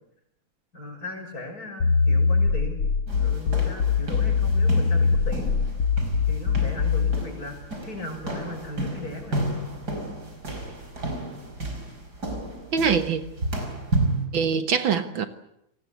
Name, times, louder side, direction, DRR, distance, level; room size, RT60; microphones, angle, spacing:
voice 1, 0.7-2.8 3.2-5.5 6.3-9.5, left 2 dB, 40° left, 6.6 m, -37 dB
sound 1, 1.8-7.3, left 5 dB, 90° left, 3.0 m, -22 dB
sound 2, 3.1-14.3, right 1 dB, 45° right, 5.4 m, -32 dB
voice 2, 12.7-13.2 14.3-15.3, right 6 dB, 65° right, 2.1 m, -23 dB
30.0 x 19.5 x 8.3 m
omnidirectional pair, 2.3 m